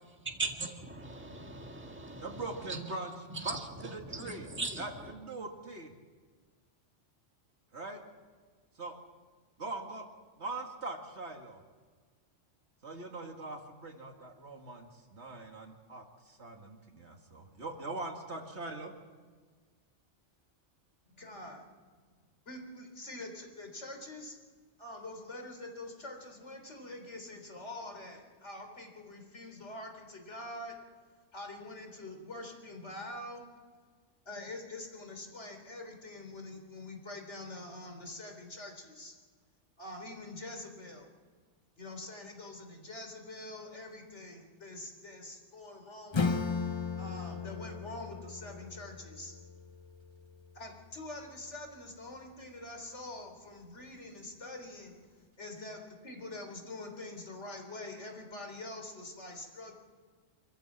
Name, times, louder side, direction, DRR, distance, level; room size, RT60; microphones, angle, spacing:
voice 1, 0.2-2.8 3.3-5.1, right 3 dB, 10° right, 2 dB, 1.9 m, -40 dB
voice 2, 2.2-3.6 3.8-4.5 4.8-5.9 7.7-8.0 8.8-9.0 9.6-10.1 10.4-11.6 12.8-18.9, right 2 dB, 65° right, 3 dB, 2.5 m, -42 dB
voice 3, 21.1-21.6 22.5-24.4 24.8-30.8 31.3-33.4 34.3-39.1 39.8-41.1 41.8-46.4 47.0-49.3 50.5-55.0 55.4-59.7, left 2 dB, 70° left, 4 dB, 4.0 m, -45 dB
Acoustic guitar / Strum, 46.1-51.4, left 5 dB, 30° left, 0.5 m, -37 dB
26.0 x 14.5 x 7.5 m, 1.5 s
omnidirectional pair, 1.3 m